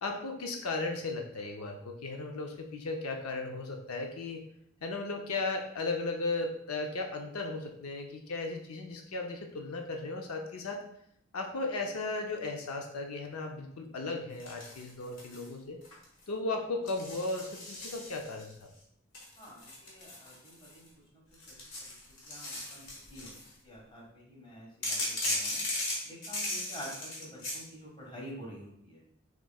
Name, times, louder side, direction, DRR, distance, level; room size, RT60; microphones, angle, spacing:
voice 1, 0.0-4.4 4.8-10.8 11.3-15.8 16.3-18.7, left 3 dB, 90° left, 3 dB, 0.6 m, -36 dB
sound 1, 14.4-15.5 15.8-16.2 16.9-18.5 19.1-20.9 21.3-23.5 24.8-27.6, left 1 dB, 65° left, 1.4 m, -37 dB
voice 2, 19.4-22.0 22.2-25.6 26.0-29.0, equal, 25° left, -3 dB, 1.5 m, -49 dB
6.2 x 3.7 x 2.3 m, 0.71 s
head